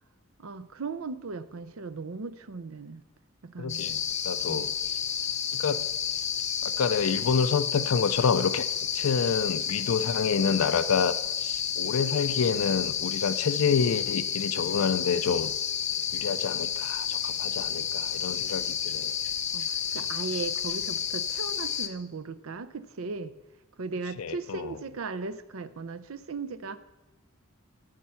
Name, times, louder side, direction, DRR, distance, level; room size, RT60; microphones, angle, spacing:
voice 1, 0.4-3.0 3.4-3.8 4.4-4.7 19.5-23.3 23.8-26.8, right 4 dB, 80° right, 13 dB, 0.6 m, -37 dB
voice 2, 3.6-4.7 5.5-5.9 6.6-8.7 8.9-11.1 11.4-15.5 16.1-19.1 24.2-24.7, left 6 dB, 85° left, 14 dB, 0.5 m, -28 dB
sound 1, 3.7-21.9, left 8 dB, 35° left, 0.7 m, -31 dB
13.5 x 6.4 x 5.7 m, 1.0 s
head